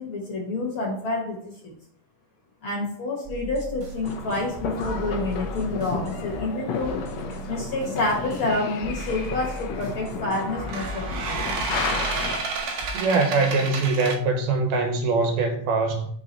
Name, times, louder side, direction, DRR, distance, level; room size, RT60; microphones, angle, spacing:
voice 1, 0.0-1.8 2.6-7.0 7.5-11.4, left 2 dB, 50° left, 1.7 m, -28 dB
sound 1, 3.2-13.0, right 2 dB, 45° right, 1.1 m, -38 dB
sound 2, 4.0-12.4, left 5 dB, 75° left, 1.6 m, -33 dB
sound 3, 9.0-9.3 10.5-14.2, right 4 dB, 70° right, 2.2 m, -31 dB
voice 2, 12.9-16.1, right 3 dB, 85° right, 2.5 m, -23 dB
5.6 x 3.6 x 5.3 m
omnidirectional pair, 3.6 m